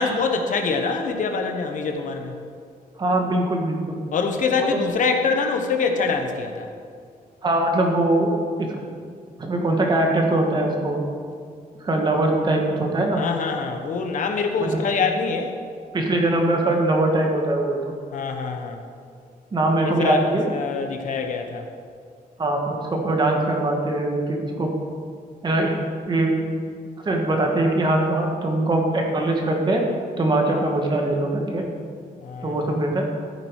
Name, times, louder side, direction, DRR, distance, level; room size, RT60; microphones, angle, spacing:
voice 1, 0.0-2.4 4.1-6.7 13.2-15.5 18.1-18.8 19.8-20.2 20.5-21.7 32.2-32.8, left 4 dB, 55° left, 4 dB, 1.2 m, -24 dB
voice 2, 3.0-4.0 4.6-4.8 7.4-8.3 8.6-8.8 9.4-11.0 11.8-13.3 14.6-14.8 15.9-17.8 19.5-20.5 22.4-24.7 25.4-26.4 27.0-29.8 30.2-31.6 32.4-33.0, right 2 dB, 30° right, 1 dB, 1.7 m, -22 dB
14.0 x 8.8 x 4.8 m, 2.1 s
wide cardioid pair, 160°, 15 cm